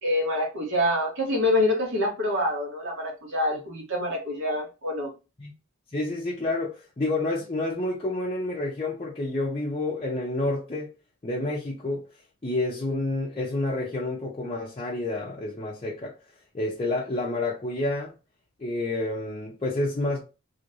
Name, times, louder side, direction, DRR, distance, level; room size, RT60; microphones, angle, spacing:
voice 1, 0.0-5.1, left 1 dB, 60° right, 1.4 m, -26 dB
voice 2, 5.9-10.9 11.2-12.0 12.4-16.1 16.5-18.1 18.6-20.2, left 2 dB, 25° left, 0.6 m, -29 dB
3.1 x 2.8 x 2.6 m
head